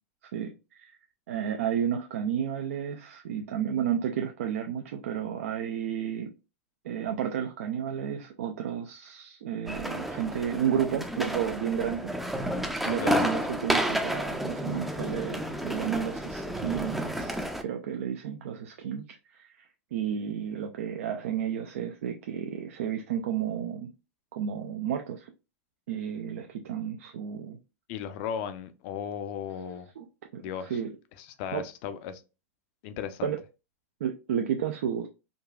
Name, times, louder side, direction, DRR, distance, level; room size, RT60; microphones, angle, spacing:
voice 1, 0.3-0.9 1.3-6.3 6.8-12.5 12.8-23.9 24.3-25.3 25.9-27.6 30.0-30.1 30.3-30.9 31.5-31.6 33.2-33.4 34.0-35.1, right 8 dB, 70° right, 0.4 m, -32 dB
sound 1, 9.7-17.6, equal, 5° right, 0.4 m, -31 dB
voice 2, 12.9-13.2 27.9-29.9 30.4-30.8 31.4-32.2 32.8-33.3, left 8 dB, 55° left, 0.5 m, -36 dB
3.8 x 2.3 x 2.3 m
hypercardioid pair, 100°, 8 cm